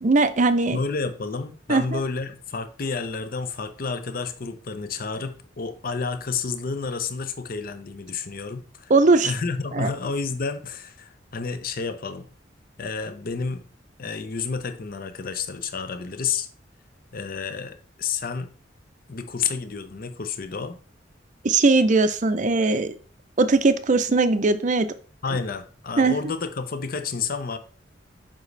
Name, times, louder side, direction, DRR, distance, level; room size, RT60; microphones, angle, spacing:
voice 1, 0.0-0.8 1.7-2.0 8.9-9.3 9.7-9.9 21.4-22.9 23.4-24.9 26.0-26.2, right 3 dB, 40° right, 0.5 m, -19 dB
voice 2, 0.7-8.9 9.2-12.3 12.8-13.6 14.0-16.5 17.1-18.5 19.1-20.8 25.2-27.6, left 5 dB, 50° left, 0.7 m, -30 dB
7.3 x 5.3 x 3.3 m
head